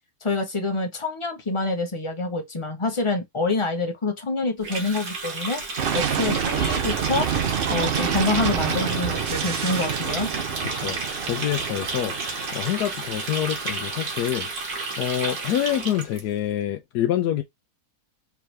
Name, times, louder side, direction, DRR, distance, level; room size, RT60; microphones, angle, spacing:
voice 1, 0.2-5.6 5.9-7.3 7.7-10.3, left 3 dB, 25° left, 0.6 m, -26 dB
Water tap faucet, 4.6-16.2, right 3 dB, 70° right, 2.0 m, -32 dB
sound 1, 5.8-15.6, right 8 dB, 55° right, 0.6 m, -28 dB
voice 2, 10.7-14.5 15.0-17.4, left 11 dB, 85° left, 1.2 m, -26 dB
4.6 x 3.1 x 3.3 m
omnidirectional pair, 1.7 m